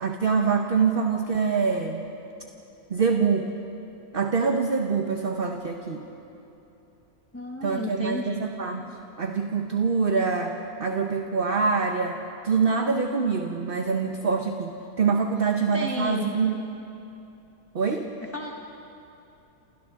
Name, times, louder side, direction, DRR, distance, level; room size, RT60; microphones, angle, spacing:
voice 1, 0.0-2.1 2.9-3.5 4.1-6.0 7.6-8.8 9.2-16.6 17.7-18.1, right 5 dB, 45° right, 3 dB, 1.1 m, -25 dB
voice 2, 7.3-8.5 15.7-16.4 18.3-18.5, left 2 dB, 10° left, 0 dB, 1.1 m, -32 dB
29.0 x 27.5 x 3.7 m, 2.9 s
omnidirectional pair, 1.5 m